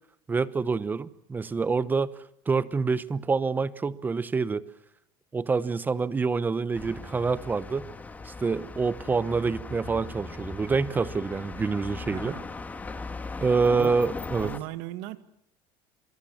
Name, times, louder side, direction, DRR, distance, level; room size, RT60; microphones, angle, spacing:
voice 1, 0.3-2.1 2.5-4.6 5.3-7.9 8.2-12.3 13.4-14.5, right 4 dB, 15° right, 16 dB, 0.9 m, -26 dB
sound 1, 6.7-14.6, left 3 dB, 15° left, 1.7 m, -39 dB
voice 2, 12.1-12.4 13.7-14.0 14.4-15.2, right 14 dB, 75° right, 12 dB, 1.9 m, -37 dB
28.0 x 22.5 x 7.3 m, 0.71 s
cardioid pair, 150°, 12 cm